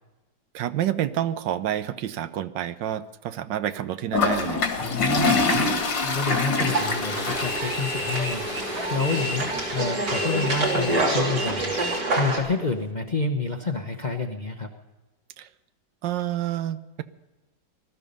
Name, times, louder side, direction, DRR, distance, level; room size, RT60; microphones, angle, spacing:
voice 1, 0.5-4.6 15.4-15.5 16.0-17.0, right 11 dB, 85° right, 12 dB, 1.4 m, -28 dB
Toilet flush, 4.1-9.2, left 3 dB, 75° left, 2.5 m, -25 dB
voice 2, 4.8-5.7 6.0-14.7, left 4 dB, 35° left, 4 dB, 0.7 m, -29 dB
sound 1, 6.6-12.4, right 2 dB, 70° right, 3.7 m, -27 dB
sound 2, 7.3-12.1, equal, 15° right, 1.6 m, -34 dB
20.0 x 13.0 x 5.4 m, 1.1 s
omnidirectional pair, 2.0 m